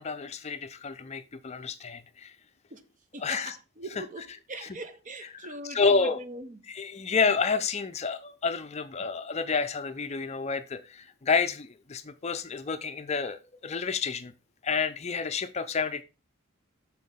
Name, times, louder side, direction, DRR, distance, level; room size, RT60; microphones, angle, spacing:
voice 1, 0.0-2.3 3.2-3.6 3.9-4.3 4.6-4.7 5.3-6.2 6.7-14.3 14.6-16.0, left 5 dB, 30° left, 0.5 m, -29 dB
voice 2, 3.1-6.6, right 2 dB, 35° right, 0.5 m, -41 dB
6.2 x 5.9 x 3.6 m
head